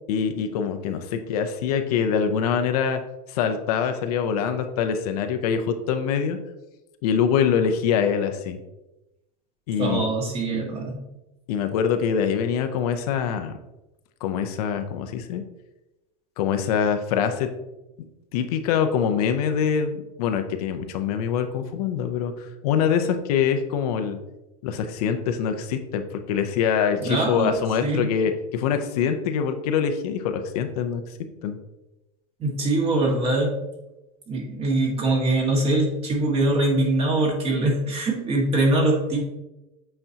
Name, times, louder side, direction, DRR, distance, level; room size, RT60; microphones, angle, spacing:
voice 1, 0.1-3.0 3.3-6.4 7.0-8.6 9.7-10.1 11.5-13.5 14.2-15.4 16.4-17.5 18.3-24.2 24.6-31.0 31.4-31.6, left 7 dB, 80° left, 7 dB, 0.7 m, -24 dB
voice 2, 9.8-10.9 27.0-27.5 27.8-28.1 32.4-33.6 34.3-39.2, right 2 dB, 30° right, -1 dB, 1.7 m, -23 dB
7.8 x 4.3 x 2.8 m, 0.97 s
supercardioid pair, 135°, 19 cm